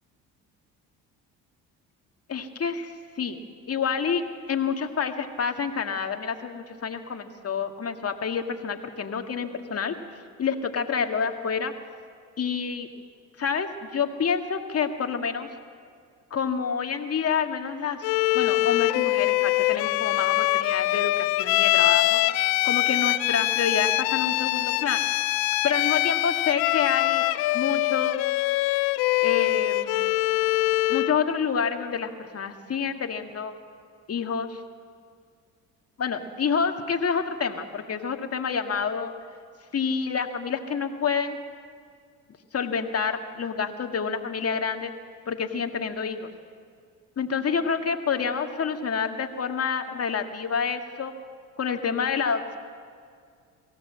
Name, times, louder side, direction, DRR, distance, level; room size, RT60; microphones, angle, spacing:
voice 1, 2.3-3.4 3.7-10.0 10.4-11.7 12.4-12.9 13.4-15.5 16.3-18.1 18.3-22.2 22.6-25.1 25.6-27.3 27.5-28.2 29.2-30.2 30.9-33.5 34.1-34.6 36.0-39.1 39.7-41.4 42.5-44.9 45.3-46.3 47.2-51.1 51.6-52.6, left 6 dB, 40° left, 6 dB, 1.9 m, -28 dB
Bowed string instrument, 18.0-31.2, left 19 dB, 75° left, 0.6 m, -23 dB
22.5 x 16.0 x 7.5 m, 2.2 s
supercardioid pair, 70°, 36 cm